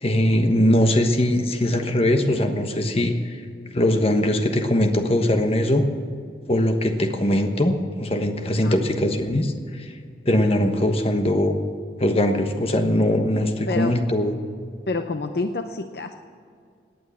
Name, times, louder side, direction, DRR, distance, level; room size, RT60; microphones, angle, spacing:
voice 1, 0.0-3.4 3.7-5.9 6.5-9.9 10.3-11.6 12.0-14.3, left 1 dB, 30° left, 5 dB, 1.2 m, -21 dB
voice 2, 13.7-14.0 14.9-16.2, left 3 dB, 55° left, 7 dB, 0.7 m, -28 dB
17.5 x 9.3 x 7.3 m, 2.2 s
head